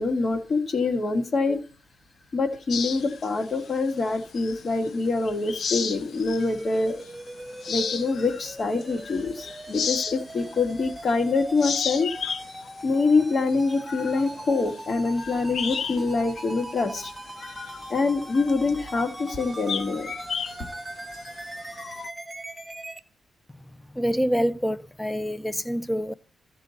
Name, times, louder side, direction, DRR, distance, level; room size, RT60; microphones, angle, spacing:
voice 1, 0.0-1.6 2.3-7.1 7.7-17.1 17.5-17.6 17.9-20.1, left 3 dB, 45° left, 2.1 m, -25 dB
sound 1, 2.7-4.9 5.2-6.6 7.0-7.1 7.5-11.2 11.5-16.1 16.4-16.5 17.0-22.1, left 6 dB, 65° left, 0.6 m, -34 dB
sound 2, 6.4-23.0, right 1 dB, 10° right, 1.0 m, -40 dB
voice 2, 23.9-26.1, equal, 10° left, 0.6 m, -26 dB
14.5 x 6.2 x 4.1 m
cardioid pair, 105°, 0 cm